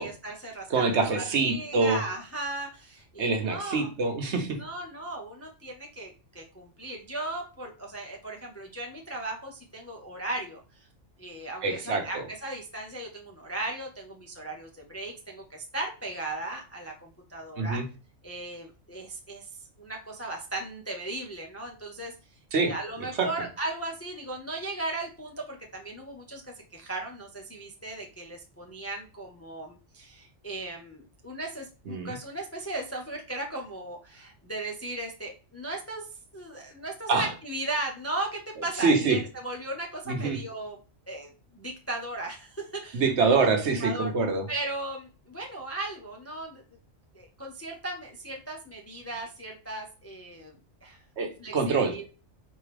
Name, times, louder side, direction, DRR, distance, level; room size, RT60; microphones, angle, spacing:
voice 1, 0.0-3.9 4.5-10.6 11.2-17.8 18.2-19.5 19.8-22.1 22.6-26.4 26.7-36.1 36.3-40.8 41.1-43.5 43.8-44.1 44.5-46.6 47.1-50.5 50.8-51.0 51.4-52.1, right 2 dB, 15° left, 1 dB, 0.5 m, -37 dB
voice 2, 0.7-2.0 3.2-4.5 11.6-12.2 17.6-17.8 22.5-22.7 23.2-23.3 31.9-32.1 37.1-37.3 38.8-39.2 40.1-40.4 42.9-44.5 51.2-51.9, right 4 dB, 65° right, 5 dB, 1.1 m, -25 dB
4.3 x 3.6 x 3.3 m, 0.34 s
omnidirectional pair, 1.3 m